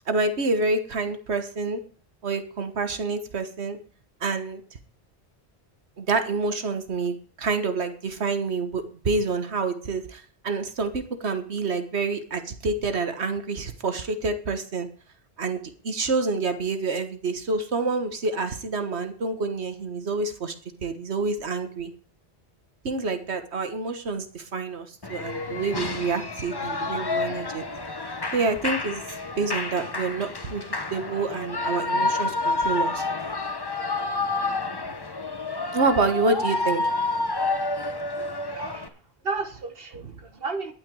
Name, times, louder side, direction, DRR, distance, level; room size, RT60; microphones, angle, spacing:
voice 1, 0.1-1.8 2.2-3.8 4.2-4.6 6.0-14.9 15.4-20.5 20.8-21.9 22.8-27.6 28.3-29.0 29.4-30.6 30.9-33.0 35.7-36.8 40.0-40.1, right 3 dB, 90° right, 1.7 m, -27 dB
Shout / Cheering, 25.0-38.9, left 3 dB, 25° left, 0.9 m, -29 dB
voice 2, 38.5-38.9 39.2-40.7, right 3 dB, 60° right, 1.4 m, -32 dB
11.5 x 9.1 x 4.8 m
omnidirectional pair, 1.1 m